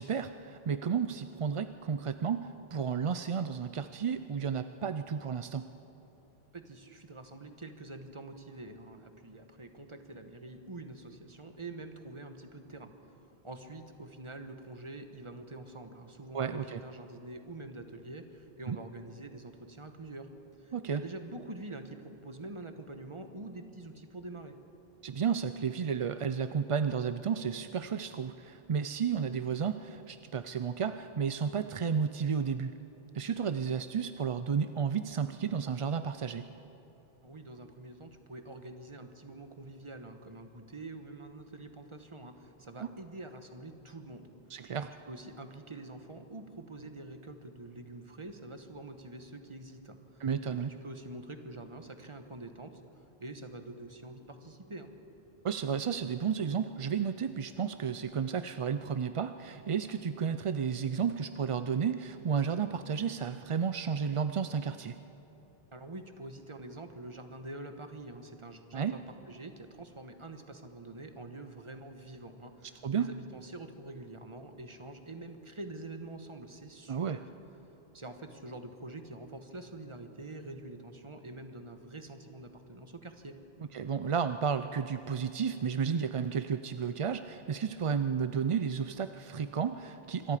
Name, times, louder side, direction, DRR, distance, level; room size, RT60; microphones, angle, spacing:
voice 1, 0.0-5.7 16.3-16.8 18.7-18.8 20.7-21.0 25.0-32.7 33.1-36.5 42.8-42.9 44.5-44.9 50.2-50.7 55.4-65.0 68.7-69.0 72.8-73.1 76.9-77.2 83.7-90.4, right 6 dB, 45° right, 10 dB, 0.4 m, -32 dB
voice 2, 6.5-20.3 20.6-24.6 37.2-44.3 44.8-50.3 50.7-52.8 53.2-54.9 65.7-77.3 77.9-83.4, right 2 dB, 30° right, 7 dB, 1.3 m, -46 dB
26.5 x 22.0 x 5.0 m, 3.0 s
omnidirectional pair, 1.0 m